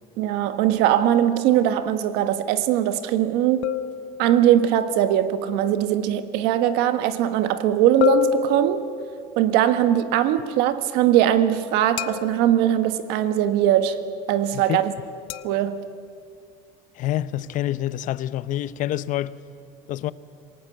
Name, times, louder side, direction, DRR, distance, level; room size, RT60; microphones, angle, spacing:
voice 1, 0.2-3.7 4.2-8.8 9.4-14.0 14.3-14.9 15.4-15.8, right 11 dB, 80° right, 1.4 m, -20 dB
sound 1, 3.6-4.7 8.0-9.4 12.0-12.7 15.3-15.6, left 10 dB, 80° left, 0.8 m, -27 dB
voice 2, 16.9-19.4 19.9-20.1, left 13 dB, 50° left, 0.7 m, -27 dB
27.0 x 18.5 x 7.8 m
cardioid pair, 145°, 17 cm